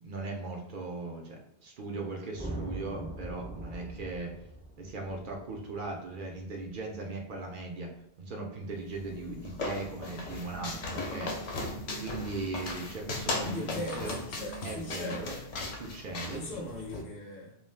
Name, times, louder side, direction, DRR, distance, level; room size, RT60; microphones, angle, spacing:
voice 1, 0.0-4.3 4.8-7.9 8.2-11.6 12.0-14.2 14.6-15.3 15.8-16.4, right 3 dB, 60° right, 1 dB, 0.6 m, -38 dB
sound 1, 2.3-6.7, right 1 dB, 10° right, 0.3 m, -42 dB
sound 2, 8.9-17.0, left 2 dB, 85° left, 0.9 m, -37 dB
voice 2, 13.4-15.5 16.3-17.6, left 2 dB, 55° left, -2 dB, 0.8 m, -39 dB
2.4 x 2.3 x 3.3 m, 0.76 s
omnidirectional pair, 1.2 m